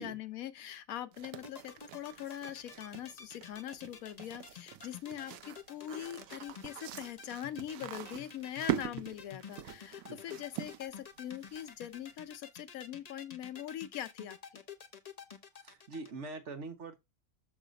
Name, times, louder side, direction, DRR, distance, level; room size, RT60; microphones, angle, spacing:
voice 1, 0.0-14.6, left 11 dB, 70° left, 1.0 m, -42 dB
sound 1, 1.1-12.0, right 13 dB, 80° right, 1.1 m, -43 dB
sound 2, 1.3-16.1, left 7 dB, 45° left, 0.5 m, -49 dB
voice 2, 15.6-17.0, right 3 dB, 55° right, 1.1 m, -43 dB
6.6 x 3.2 x 5.0 m
omnidirectional pair, 1.6 m